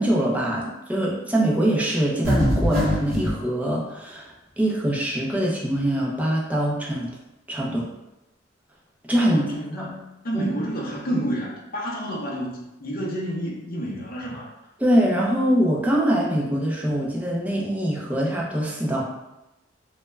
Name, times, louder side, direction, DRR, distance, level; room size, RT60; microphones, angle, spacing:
voice 1, 0.0-7.1 7.5-7.9 9.1-9.4 9.8-9.9 10.3-10.5 14.8-19.0, right 1 dB, 10° right, -4 dB, 0.4 m, -23 dB
sound 1, 2.2-3.4, equal, 55° right, 0.9 m, -22 dB
voice 2, 9.2-14.5, equal, 50° left, -3 dB, 0.6 m, -30 dB
2.2 x 2.1 x 3.1 m, 0.95 s
head